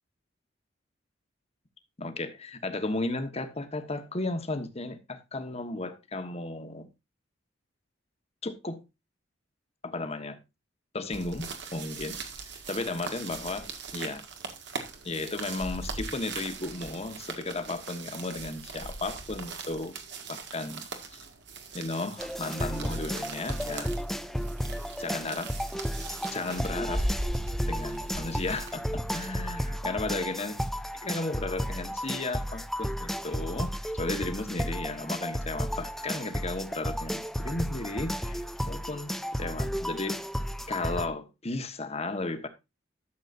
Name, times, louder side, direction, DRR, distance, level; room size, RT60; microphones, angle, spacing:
voice 1, 2.0-6.9 8.4-8.8 9.8-10.4 10.9-12.2 12.7-14.2 15.0-19.9 20.3-20.8 21.1-21.2 21.7-23.9 25.0-25.5 26.3-27.1 27.7-30.6 31.0-40.2 40.7-42.5, left 2 dB, 35° left, 1.4 m, -34 dB
sound 1, 11.1-29.3, right 2 dB, 65° right, 1.9 m, -39 dB
sound 2, 22.2-41.1, equal, ahead, 0.5 m, -33 dB
13.0 x 7.5 x 2.6 m
head